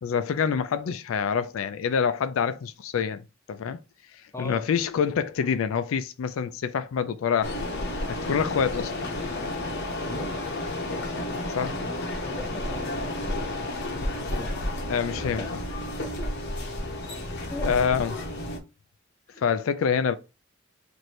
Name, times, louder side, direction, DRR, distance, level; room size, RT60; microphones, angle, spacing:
voice 1, 0.0-3.2 3.5-3.8 4.4-7.7 8.1-8.9 11.5-11.8 14.9-15.4 17.6-18.2 19.4-20.2, left 7 dB, 70° left, 0.4 m, -26 dB
voice 2, 4.3-4.7 8.3-8.5 10.0-10.4 11.8-13.4 14.2-14.6 15.4-16.4 17.5-17.8 18.1-18.2 19.3-19.4, left 2 dB, 15° left, 0.5 m, -39 dB
sound 1, 7.4-18.6, left 1 dB, 50° left, 0.8 m, -31 dB
3.1 x 2.6 x 4.2 m
head